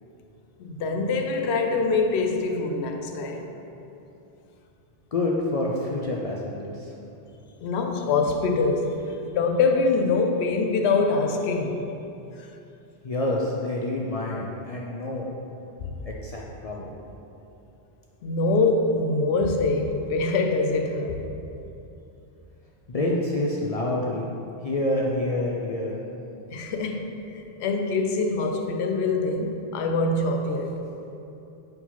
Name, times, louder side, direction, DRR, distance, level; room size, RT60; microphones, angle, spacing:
voice 1, 0.6-3.5 7.6-11.8 15.8-15.9 18.2-21.3 26.5-27.1 27.6-30.7, left 3 dB, 80° left, 4 dB, 0.9 m, -24 dB
voice 2, 5.1-6.9 13.0-15.3 16.1-16.9 22.9-24.3 24.6-26.0, left 1 dB, 50° left, -3 dB, 0.5 m, -27 dB
4.7 x 3.8 x 5.6 m, 2.8 s
omnidirectional pair, 1.1 m